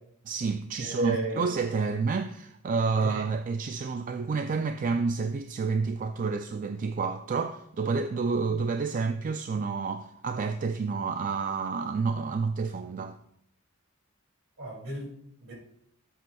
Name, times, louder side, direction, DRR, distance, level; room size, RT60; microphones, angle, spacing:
voice 1, 0.3-13.2, right 4 dB, 40° right, 0.3 m, -29 dB
voice 2, 0.8-1.5 3.0-3.2 14.6-15.1 15.4-15.5, right 2 dB, 65° right, 2.5 m, -32 dB
12.5 x 7.8 x 2.3 m
head